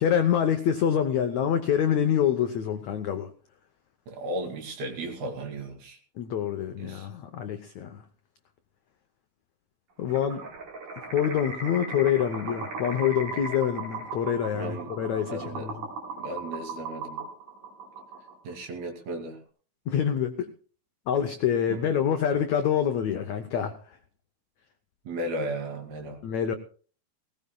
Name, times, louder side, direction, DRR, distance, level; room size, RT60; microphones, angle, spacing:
voice 1, 0.0-3.3 6.2-8.0 10.0-10.4 11.1-15.9 19.9-20.5 21.1-23.8 26.2-26.5, left 9 dB, 85° left, 1.5 m, -26 dB
voice 2, 4.1-6.0 6.8-7.1 14.5-14.9 15.3-15.7 16.1-17.2 18.4-19.4 21.7-21.8 25.1-26.2, right 1 dB, 80° right, 4.4 m, -35 dB
sound 1, 10.1-18.5, right 3 dB, 60° right, 5.9 m, -37 dB
19.5 x 17.5 x 2.3 m
omnidirectional pair, 4.3 m